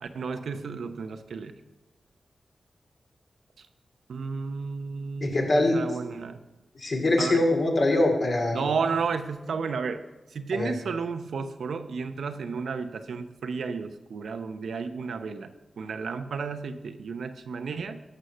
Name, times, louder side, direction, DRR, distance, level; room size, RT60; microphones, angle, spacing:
voice 1, 0.0-1.5 4.1-6.4 7.2-7.4 8.5-10.0 10.3-18.0, right 5 dB, 90° right, 9 dB, 0.7 m, -32 dB
voice 2, 5.2-5.8 6.7-8.7 10.5-10.7, left 2 dB, 60° left, 1 dB, 2.7 m, -23 dB
13.0 x 6.3 x 5.6 m, 1.1 s
cardioid pair, 75°, 0 cm